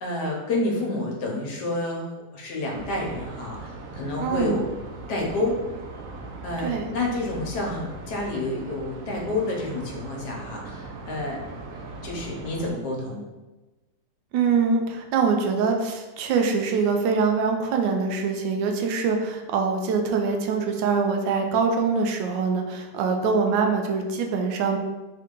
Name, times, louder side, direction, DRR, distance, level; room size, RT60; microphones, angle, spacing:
voice 1, 0.0-4.7 5.1-5.6 6.4-11.4 11.7-13.2, left 2 dB, 70° left, -1 dB, 1.3 m, -29 dB
sound 1, 2.7-12.7, right 2 dB, 70° right, 0.8 m, -39 dB
voice 2, 4.2-4.6 6.6-6.9 14.3-24.8, right 5 dB, 90° right, 3 dB, 1.3 m, -24 dB
3.8 x 2.8 x 3.6 m, 1.1 s
omnidirectional pair, 1.9 m